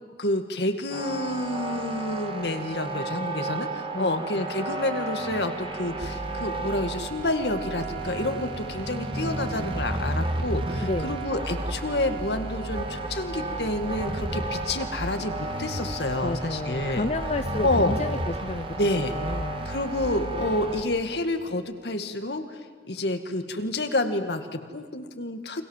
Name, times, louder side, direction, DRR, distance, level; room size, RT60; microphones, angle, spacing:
voice 1, 0.2-17.1 17.6-18.0 18.8-19.1 19.7-22.6 22.9-25.6, left 1 dB, 70° left, 7 dB, 2.2 m, -29 dB
sound 1, 0.9-20.8, right 2 dB, 30° right, 1.9 m, -32 dB
voice 2, 3.9-4.3 10.8-11.2 16.2-18.8 19.1-19.7, left 2 dB, 40° left, 9 dB, 0.7 m, -31 dB
29.5 x 25.0 x 7.5 m, 1.5 s
head